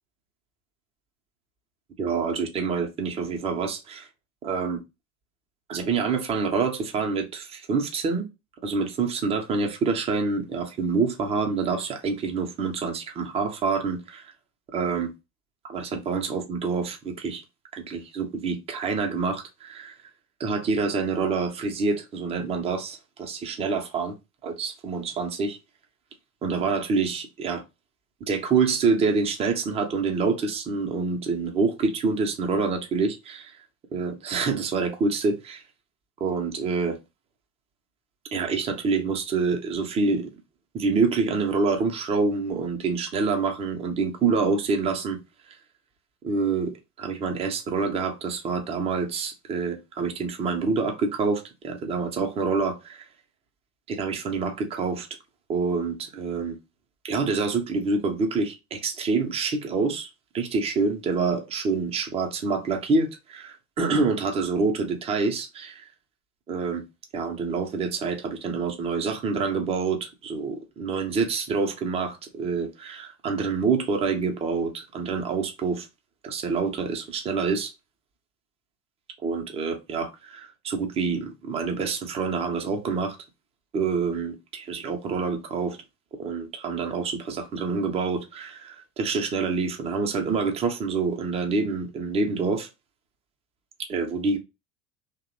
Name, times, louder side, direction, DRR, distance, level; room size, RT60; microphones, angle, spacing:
voice 1, 2.0-4.1 4.4-4.8 5.7-8.3 8.6-14.3 14.7-15.1 15.6-17.4 17.7-20.0 20.4-24.1 24.4-25.6 26.4-27.6 28.3-33.6 33.9-35.6 36.2-37.0 38.3-40.3 40.7-45.2 45.5-45.6 46.2-53.1 53.9-55.1 55.5-56.6 57.0-65.9 66.5-66.8 67.1-75.9 76.2-77.7 79.2-83.2 83.7-85.8 86.2-92.7 93.9-94.4, right 4 dB, 15° right, 0.3 m, -27 dB
2.7 x 2.0 x 2.4 m
figure-of-eight pair, 80°, 43 cm